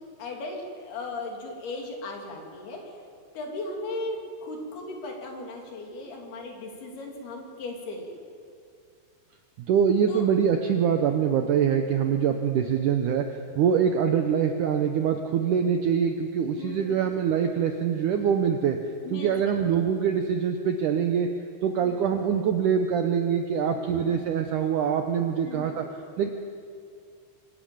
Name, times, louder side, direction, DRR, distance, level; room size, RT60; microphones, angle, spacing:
voice 1, 0.2-3.0 3.3-8.2 10.1-10.3 16.6-17.1 19.0-19.3 21.8-22.1 23.7-24.2 25.5-25.7, left 2 dB, 70° left, 1 dB, 4.6 m, -37 dB
voice 2, 9.7-18.8 19.1-21.3 21.6-25.9 26.2-26.3, right 7 dB, 80° right, 5 dB, 1.9 m, -24 dB
24.5 x 12.0 x 8.9 m, 2.3 s
omnidirectional pair, 4.7 m